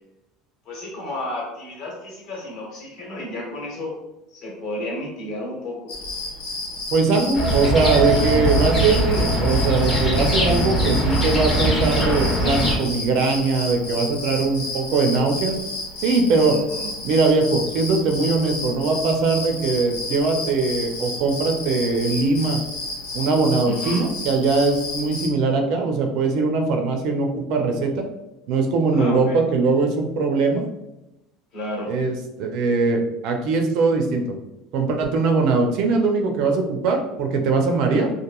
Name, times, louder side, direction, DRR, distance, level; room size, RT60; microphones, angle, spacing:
voice 1, 0.6-3.9 4.3-5.9 16.5-16.9 23.6-24.0 28.9-29.4 31.5-31.9, left 1 dB, 45° left, -3 dB, 0.9 m, -32 dB
sound 1, 5.9-25.3, left 2 dB, 90° left, 0.8 m, -32 dB
voice 2, 6.9-15.6 16.0-16.6 17.0-22.6 23.1-28.1 28.5-30.6 31.9-34.4 34.7-38.1, right 3 dB, 50° right, 4 dB, 0.4 m, -21 dB
sound 2, 7.3-12.8, right 1 dB, 15° left, 0.5 m, -21 dB
2.9 x 2.4 x 2.3 m, 0.94 s
cardioid pair, 180°, 0 cm